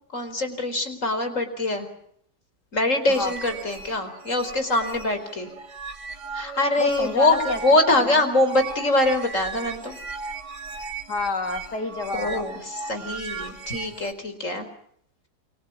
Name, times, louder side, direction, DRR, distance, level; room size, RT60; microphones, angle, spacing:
voice 1, 0.1-1.9 2.7-5.5 6.3-10.0 12.1-14.7, left 2 dB, 45° left, 8 dB, 4.8 m, -23 dB
sound 1, 3.0-14.1, right 5 dB, 75° right, 2.8 m, -37 dB
voice 2, 6.8-8.2 11.1-12.4, left 4 dB, 70° left, 6 dB, 3.2 m, -29 dB
29.0 x 25.0 x 6.0 m, 0.67 s
omnidirectional pair, 1.8 m